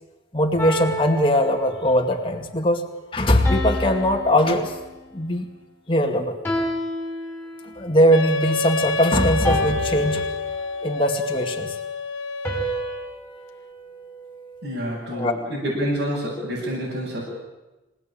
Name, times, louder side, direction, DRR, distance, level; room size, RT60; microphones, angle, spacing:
voice 1, 0.3-2.8 3.1-4.7 5.1-5.5 5.9-6.4 7.8-10.3 10.8-11.7 15.1-15.3, equal, 25° left, 3 dB, 2.3 m, -20 dB
sound 1, 0.6-2.1 3.4-5.3 6.4-7.9 9.4-10.9 12.4-14.7, equal, 10° left, 5.3 m, -31 dB
Wind instrument woodwind instrument, 8.1-13.2, left 2 dB, 75° left, 1.2 m, -28 dB
voice 2, 14.6-17.2, equal, 65° right, -7 dB, 7.7 m, -27 dB
26.5 x 18.0 x 9.0 m, 1.1 s
head